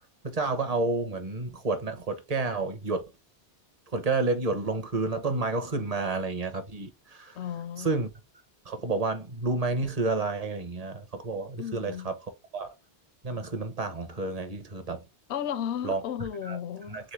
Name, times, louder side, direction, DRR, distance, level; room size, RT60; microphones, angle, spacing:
voice 1, 0.2-3.0 3.9-7.4 7.8-8.1 8.7-12.1 12.5-12.7 13.2-15.0 15.8-16.0 16.4-16.6 16.9-17.1, right 3 dB, 40° right, 0.9 m, -30 dB
voice 2, 7.4-7.9 11.6-12.1 15.3-17.0, left 9 dB, 80° left, 0.8 m, -34 dB
3.9 x 3.8 x 3.2 m
omnidirectional pair, 1.1 m